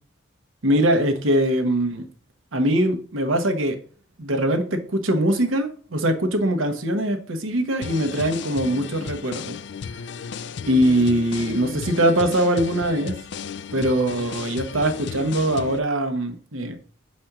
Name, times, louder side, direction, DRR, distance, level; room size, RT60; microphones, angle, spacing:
voice 1, 0.6-2.1 2.5-3.8 4.2-9.6 10.7-13.2 13.7-16.8, right 1 dB, 80° right, 7 dB, 1.1 m, -22 dB
sound 1, 7.8-15.8, left 6 dB, 60° left, 0.4 m, -34 dB
5.2 x 4.2 x 5.8 m, 0.42 s
head